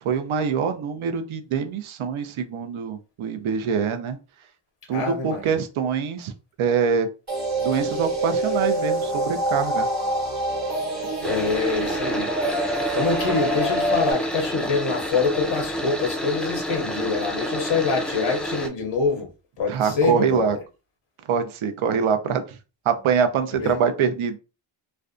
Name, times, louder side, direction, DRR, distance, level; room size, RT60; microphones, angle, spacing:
voice 1, 0.0-4.2 4.9-6.3 6.6-7.1 7.6-9.9 11.0-11.1 19.7-20.6 21.3-22.6 22.9-24.4, right 7 dB, 75° right, 0.5 m, -24 dB
voice 2, 4.9-5.6 11.2-19.3 19.6-20.5 23.5-23.7, left 4 dB, 80° left, 0.7 m, -25 dB
sound 1, 7.3-14.1, right 1 dB, 35° right, 1.0 m, -26 dB
sound 2, 11.2-18.7, equal, ahead, 0.4 m, -29 dB
2.5 x 2.2 x 2.4 m
cardioid pair, 65°, 49 cm